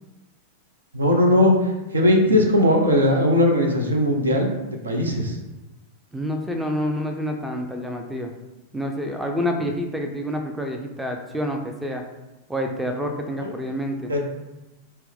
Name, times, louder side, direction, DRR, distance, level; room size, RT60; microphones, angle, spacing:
voice 1, 0.9-4.5 4.8-5.4 13.4-13.5 14.1-14.3, left 1 dB, 75° right, 2 dB, 0.5 m, -19 dB
voice 2, 6.1-8.3 8.7-12.0 12.5-14.1, equal, 5° right, 4 dB, 0.4 m, -28 dB
4.2 x 2.0 x 3.5 m, 1.0 s
figure-of-eight pair, 90°, 0 cm